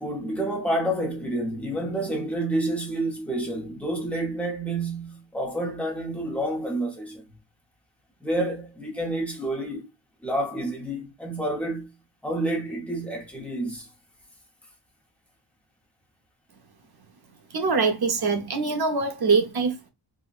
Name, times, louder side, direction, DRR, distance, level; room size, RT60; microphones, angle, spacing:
voice 1, 0.0-7.2 8.2-9.9 10.2-11.9 12.2-13.9, right 1 dB, 5° left, 0.7 m, -29 dB
voice 2, 17.5-19.9, right 4 dB, 50° right, 0.6 m, -23 dB
4.0 x 2.1 x 2.3 m
wide cardioid pair, 160°, 50 cm